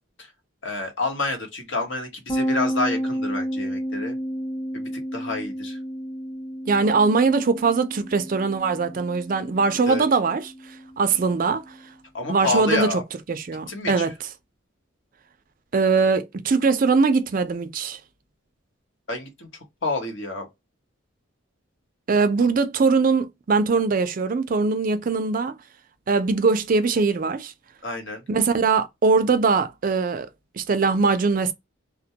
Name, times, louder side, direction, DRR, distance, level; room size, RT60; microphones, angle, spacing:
voice 1, 0.6-4.2 4.7-5.8 9.8-10.1 12.1-13.0 13.7-14.1 19.1-19.5 19.8-20.5 27.8-28.2, left 3 dB, 65° left, 0.9 m, -28 dB
sound 1, 2.3-11.8, equal, 15° left, 0.6 m, -31 dB
voice 2, 6.7-10.4 11.0-11.6 12.3-12.9 13.3-14.1 15.7-18.0 22.1-25.5 26.1-27.5 28.3-30.3 30.6-31.5, right 4 dB, 40° right, 0.4 m, -21 dB
2.1 x 2.1 x 2.7 m
head